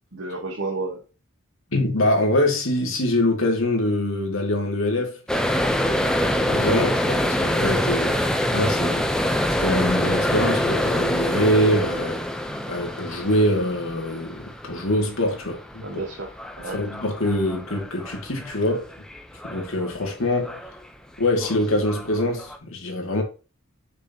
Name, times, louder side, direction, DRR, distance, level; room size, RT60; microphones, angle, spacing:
voice 1, 0.1-1.0 8.0-8.2 15.8-16.8, right 3 dB, 60° right, 1.2 m, -32 dB
voice 2, 1.7-5.2 5.7-9.2 9.6-12.2 12.7-16.0 16.6-18.9 19.4-20.6 21.2-23.2, left 1 dB, 70° left, 2.3 m, -24 dB
sound 1, 5.3-20.1 20.4-20.9 21.2-22.6, equal, 5° left, 0.6 m, -26 dB
6.8 x 5.5 x 2.9 m
head